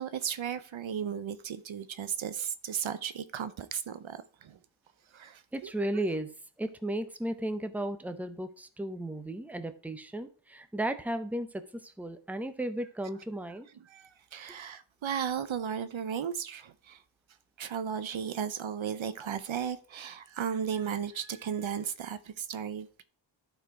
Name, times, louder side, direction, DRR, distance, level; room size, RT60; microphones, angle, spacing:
voice 1, 0.0-4.6 5.1-5.7 13.9-17.0 17.6-23.0, right 8 dB, 70° right, 0.8 m, -35 dB
voice 2, 5.5-6.3 6.6-13.7 14.5-14.6, right 1 dB, 5° right, 0.8 m, -35 dB
12.0 x 4.6 x 4.7 m
wide cardioid pair, 100°, 49 cm